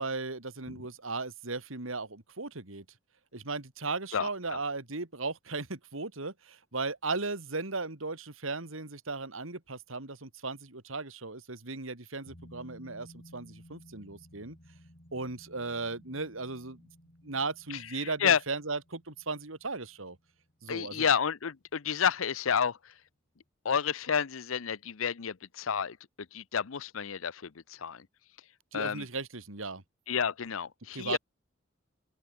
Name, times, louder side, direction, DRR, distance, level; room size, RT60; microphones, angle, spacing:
voice 1, 0.0-2.8 3.3-14.6 15.1-16.8 17.2-20.2 20.6-21.0 28.7-29.8 30.9-31.2, right 3 dB, 85° right, 2.8 m, -36 dB
voice 2, 4.1-4.6 18.0-18.4 20.7-22.8 23.6-26.0 26.3-28.1 28.7-29.1 30.1-31.2, left 7 dB, 90° left, 0.7 m, -30 dB
sound 1, 12.3-21.4 21.7-21.8, equal, 45° left, 6.4 m, -56 dB
open air
head